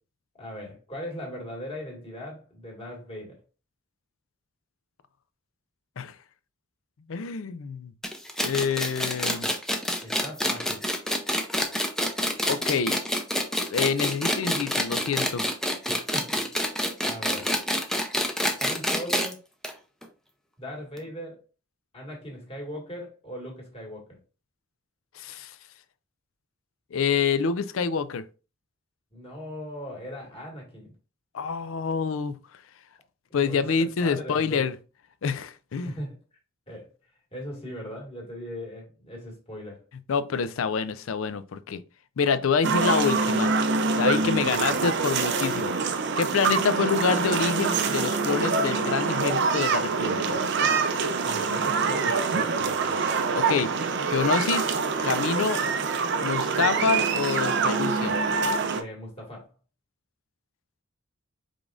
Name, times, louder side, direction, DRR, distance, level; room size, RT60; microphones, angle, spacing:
voice 1, 0.3-3.4 10.0-10.9 15.9-16.7 17.1-17.6 18.6-19.4 20.6-21.4 21.9-24.2 29.1-30.9 33.3-34.6 35.8-36.2 36.7-36.9 37.3-39.8 44.1-45.0 51.2-53.1 58.7-59.5, equal, 30° left, 1.8 m, -39 dB
voice 2, 7.1-7.9 8.4-9.5 12.5-13.0 13.7-15.4 25.2-25.5 26.9-28.2 31.3-32.4 33.3-34.7 35.2-36.0 40.1-41.8 42.2-43.5 44.0-45.7 46.2-50.4 53.3-53.7 54.0-54.7 55.0-55.6 56.2-58.2, left 5 dB, 75° left, 0.4 m, -27 dB
sound 1, 8.0-19.3 19.6-19.7 20.0-20.1 21.0-21.1, equal, 5° left, 0.5 m, -27 dB
sound 2, 42.6-58.8, right 4 dB, 55° right, 0.5 m, -25 dB
5.0 x 3.7 x 2.4 m
head